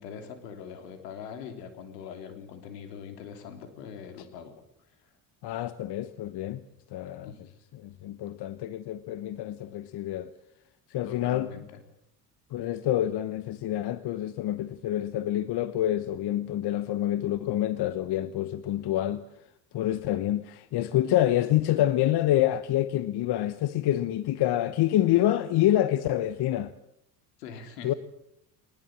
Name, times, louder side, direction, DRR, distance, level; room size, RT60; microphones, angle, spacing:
voice 1, 0.0-4.5 7.2-7.4 11.0-11.8 27.4-28.0, left 7 dB, 80° left, 3.6 m, -42 dB
voice 2, 5.4-6.6 6.9-7.3 7.8-10.3 10.9-11.5 12.5-19.2 19.7-26.7 27.8-27.9, left 13 dB, 55° left, 1.1 m, -27 dB
22.0 x 20.0 x 7.6 m
hypercardioid pair, 60°, 48 cm